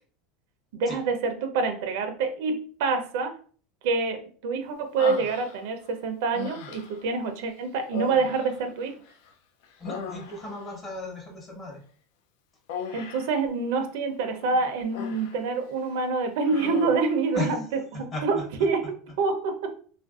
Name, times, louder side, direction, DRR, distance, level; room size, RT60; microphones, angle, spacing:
voice 1, 0.7-3.3 3.8-8.9 12.9-17.6 17.9-19.8, right 4 dB, 75° right, 6 dB, 0.5 m, -27 dB
Human voice, 5.0-5.9 6.3-7.1 7.9-9.3 9.6-10.7 12.7-13.4 14.4-15.4 15.8-16.0 16.4-17.2, left 6 dB, 70° left, 0.4 m, -38 dB
voice 2, 9.8-11.8 17.3-18.9, left 2 dB, 25° left, 2 dB, 0.9 m, -36 dB
3.2 x 2.5 x 2.3 m, 0.43 s
supercardioid pair, 140°, 0 cm